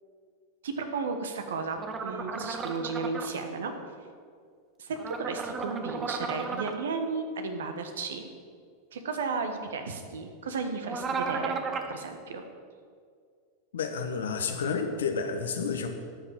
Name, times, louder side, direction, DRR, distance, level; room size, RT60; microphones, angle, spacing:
voice 1, 0.6-3.7 4.8-8.3 8.9-12.4, right 4 dB, 70° right, 6 dB, 1.3 m, -34 dB
sound 1, 1.8-3.3 5.0-6.7 10.8-11.9, right 4 dB, 25° right, 1.1 m, -34 dB
voice 2, 13.7-15.9, left 5 dB, 70° left, 6 dB, 1.2 m, -30 dB
12.0 x 6.1 x 7.4 m, 2.1 s
figure-of-eight pair, 90°, 0 cm